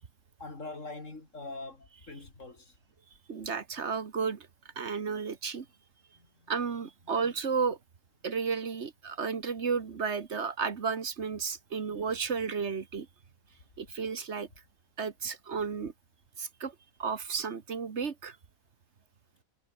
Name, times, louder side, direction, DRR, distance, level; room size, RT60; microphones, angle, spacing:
voice 1, 0.4-2.7 6.2-6.5, left 2 dB, 60° left, 4.0 m, -43 dB
voice 2, 3.3-4.5 4.8-5.7 6.5-7.8 8.2-13.1 13.8-14.5 15.0-15.9 16.4-18.4, right 5 dB, 55° right, 1.6 m, -33 dB
omnidirectional pair, 1.5 m